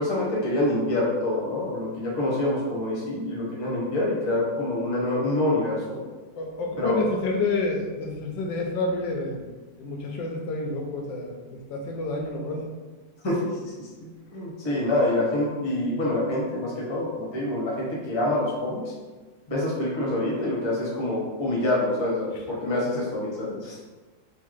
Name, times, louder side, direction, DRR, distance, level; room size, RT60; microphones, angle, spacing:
voice 1, 0.0-6.0 6.8-7.0 13.2-13.9 14.3-18.9 19.5-23.8, left 1 dB, 20° left, -6 dB, 0.8 m, -26 dB
voice 2, 6.3-9.4 9.8-12.6, left 2 dB, 80° left, 1 dB, 1.3 m, -29 dB
4.6 x 2.3 x 3.1 m, 1.3 s
omnidirectional pair, 2.0 m